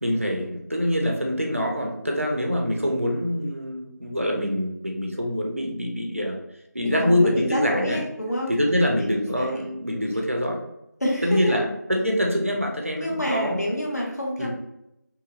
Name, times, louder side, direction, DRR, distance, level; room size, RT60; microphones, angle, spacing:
voice 1, 0.0-6.4 6.7-8.0 8.5-10.6 11.2-13.6 14.4-14.5, equal, 45° right, 0 dB, 0.8 m, -25 dB
voice 2, 6.8-8.5 8.8-9.7 11.0-11.6 13.0-14.5, equal, 60° left, -3 dB, 1.0 m, -28 dB
5.6 x 2.3 x 2.6 m, 0.85 s
figure-of-eight pair, 180°, 10 cm